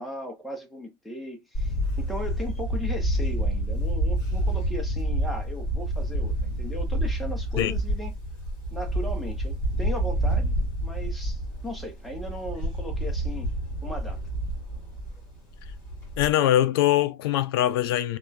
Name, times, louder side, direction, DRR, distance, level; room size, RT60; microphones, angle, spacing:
voice 1, 0.0-8.1 8.7-13.6 13.8-14.2, equal, ahead, 0.5 m, -37 dB
Camera, 1.5-16.3, right 1 dB, 30° left, 1.6 m, -28 dB
voice 2, 16.2-18.2, left 12 dB, 70° left, 0.4 m, -22 dB
2.8 x 2.2 x 2.2 m
supercardioid pair, 170°, 13 cm